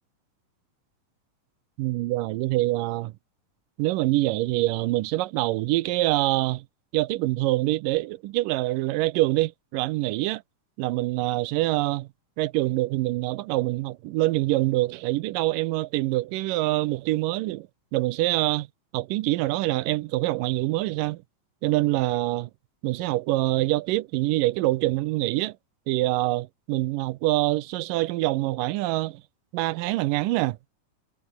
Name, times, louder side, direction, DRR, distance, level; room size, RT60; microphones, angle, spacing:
voice 1, 1.8-3.1 3.8-6.7 6.9-10.4 10.8-12.1 12.4-18.7 18.9-21.2 21.6-22.5 22.8-25.6 25.9-29.2 29.5-30.6, right 18 dB, 85° right, 2.4 m, -25 dB
omnidirectional pair, 3.8 m